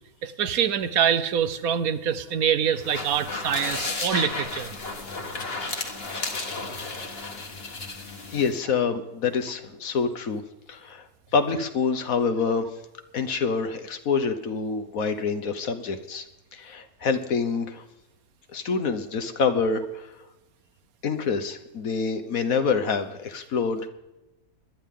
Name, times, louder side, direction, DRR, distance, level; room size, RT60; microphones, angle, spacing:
voice 1, 0.2-4.7, right 8 dB, 70° right, 12 dB, 1.2 m, -25 dB
sound 1, 2.8-8.5, left 3 dB, 40° left, 1.8 m, -33 dB
voice 2, 8.3-10.4 10.7-12.7 13.1-16.3 16.5-17.8 18.5-20.1 21.0-23.9, left 5 dB, 65° left, 9 dB, 1.5 m, -26 dB
21.0 x 12.0 x 3.7 m, 0.96 s
omnidirectional pair, 1.6 m